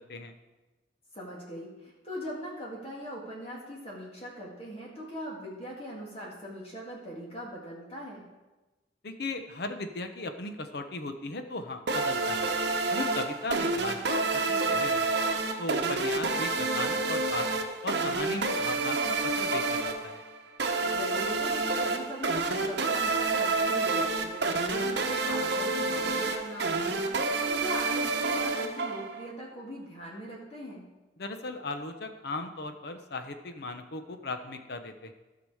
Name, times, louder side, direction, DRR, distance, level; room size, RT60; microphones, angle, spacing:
voice 1, 1.1-8.3 14.5-14.8 20.8-27.0 27.5-30.9, equal, 35° left, -3 dB, 2.0 m, -41 dB
voice 2, 9.0-12.5 12.9-15.1 15.6-20.2 31.2-35.1, left 2 dB, 60° left, 7 dB, 0.9 m, -37 dB
sound 1, 11.9-29.3, right 3 dB, 65° right, 0.9 m, -29 dB
14.0 x 6.0 x 4.9 m, 1.1 s
head